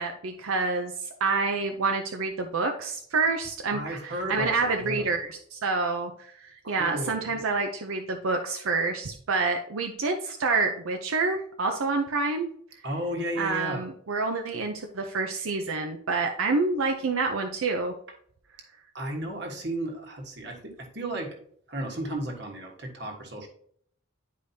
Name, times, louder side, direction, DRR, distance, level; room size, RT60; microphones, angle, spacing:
voice 1, 0.0-6.1 6.4-12.5 13.4-17.9, right 3 dB, 85° right, 4 dB, 0.6 m, -28 dB
voice 2, 3.7-5.1 6.6-7.4 12.8-13.9 18.9-21.4 21.7-23.5, right 1 dB, 55° right, 2 dB, 1.4 m, -34 dB
9.6 x 5.0 x 2.7 m, 0.64 s
head